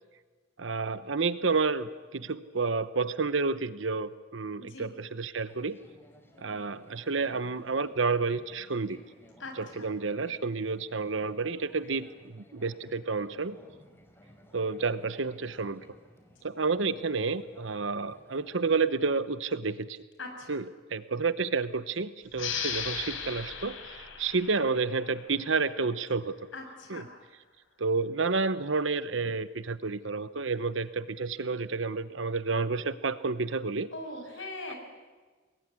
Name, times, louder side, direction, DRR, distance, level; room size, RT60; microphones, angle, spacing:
voice 1, 0.6-5.8 6.4-9.0 9.6-13.6 14.5-15.8 16.4-20.0 20.5-20.6 20.9-26.4 26.9-27.0 27.8-33.9, right 4 dB, 70° right, 14 dB, 0.9 m, -30 dB
voice 2, 4.6-4.9 9.4-9.9 20.2-20.6 26.5-27.1 33.9-34.7, left 2 dB, 70° left, 3 dB, 6.6 m, -41 dB
sound 1, 5.5-19.7, equal, 10° left, 3.7 m, -58 dB
sound 2, 22.3-25.6, left 7 dB, 90° left, 3.9 m, -37 dB
27.0 x 21.5 x 9.7 m, 1.4 s
head